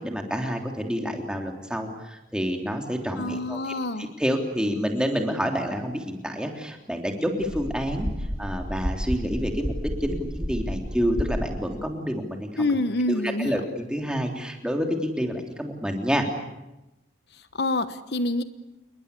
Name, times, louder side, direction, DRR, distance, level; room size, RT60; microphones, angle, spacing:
voice 1, 0.0-8.1 8.4-12.8 13.1-16.3, equal, 5° right, 3 dB, 3.4 m, -28 dB
voice 2, 3.2-4.1 12.6-13.6 17.5-18.4, left 2 dB, 65° left, 11 dB, 1.2 m, -26 dB
sound 1, 7.4-11.4, equal, 35° right, 5.7 m, -31 dB
28.5 x 22.0 x 8.3 m, 0.95 s
head